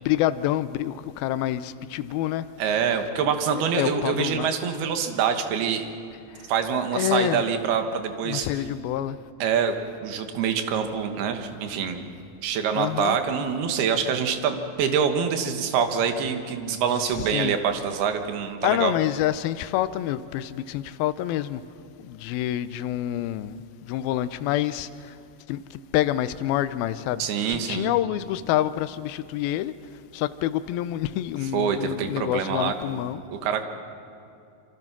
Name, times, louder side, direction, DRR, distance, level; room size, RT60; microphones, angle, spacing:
voice 1, 0.0-2.5 3.7-4.5 6.3-6.5 6.9-7.4 8.2-9.2 12.8-13.2 17.2-17.5 18.6-21.6 22.0-25.1 25.5-25.6 25.9-27.2 27.5-29.7 30.1-33.2, left 13 dB, 80° left, 13 dB, 2.5 m, -27 dB
voice 2, 2.6-5.8 6.5-8.5 9.4-9.8 10.0-12.1 12.4-18.9 27.2-27.9 31.5-33.0 33.4-33.6, right 7 dB, 80° right, 6 dB, 3.4 m, -25 dB
26.5 x 25.5 x 6.0 m, 2.5 s
omnidirectional pair, 4.5 m